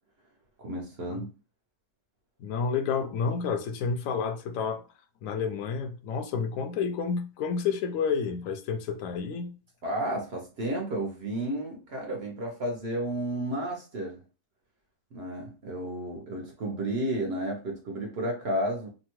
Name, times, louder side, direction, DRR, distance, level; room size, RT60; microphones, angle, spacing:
voice 1, 0.6-1.3 9.8-14.2 15.1-18.9, right 1 dB, 60° right, 0.6 m, -32 dB
voice 2, 2.4-4.8 5.2-9.5, left 5 dB, 70° left, 0.8 m, -30 dB
2.8 x 2.2 x 2.9 m
omnidirectional pair, 1.8 m